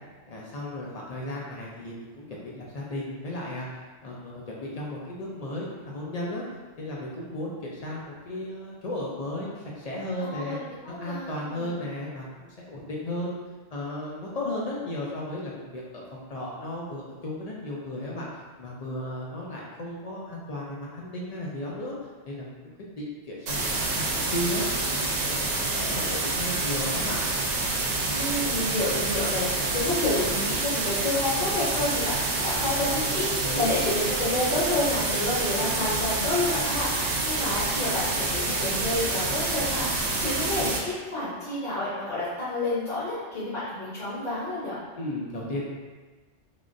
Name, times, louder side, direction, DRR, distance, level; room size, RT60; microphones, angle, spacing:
voice 1, 0.3-3.7 4.0-6.4 6.8-10.6 10.9-12.3 12.7-13.4 13.7-18.3 18.6-21.9 22.3-24.6 24.9-27.2 32.9-33.0 33.4-33.9 44.9-45.7, left 1 dB, 65° left, -4 dB, 0.4 m, -35 dB
voice 2, 10.2-11.7 28.1-44.8, left 2 dB, 45° left, -9 dB, 0.8 m, -29 dB
sound 1, 23.5-40.8, right 2 dB, 75° right, 0.8 m, -27 dB
3.4 x 2.4 x 2.5 m, 1.3 s
omnidirectional pair, 1.2 m